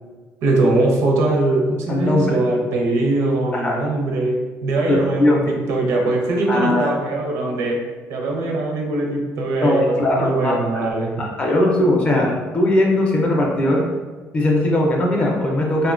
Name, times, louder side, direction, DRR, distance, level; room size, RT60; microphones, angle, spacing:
voice 1, 0.4-7.8 8.1-11.1, right 2 dB, 65° right, 0 dB, 0.5 m, -21 dB
voice 2, 1.9-2.4 3.5-3.8 4.9-5.4 6.5-7.0 9.6-10.5 11.2-13.8 14.3-15.9, left 1 dB, 25° left, -1 dB, 0.4 m, -19 dB
3.6 x 2.1 x 2.4 m, 1.4 s
cardioid pair, 175°, 5 cm